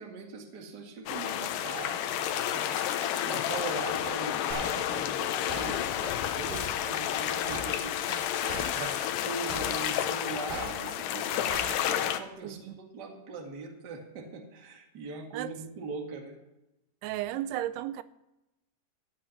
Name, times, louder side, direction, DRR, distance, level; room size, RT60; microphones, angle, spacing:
voice 1, 0.0-16.4, right 4 dB, 40° right, 1.6 m, -41 dB
sound 1, 1.1-12.2, left 11 dB, 80° left, 2.0 m, -31 dB
sound 2, 4.5-4.7 5.5-5.7 6.5-6.7 7.5-7.7 8.5-8.7 9.5-9.7 10.5-10.7 11.5-11.7, equal, 15° right, 4.8 m, -37 dB
voice 2, 12.4-12.7 15.3-15.5 17.0-18.0, right 13 dB, 90° right, 2.7 m, -34 dB
15.0 x 8.8 x 5.7 m
omnidirectional pair, 4.6 m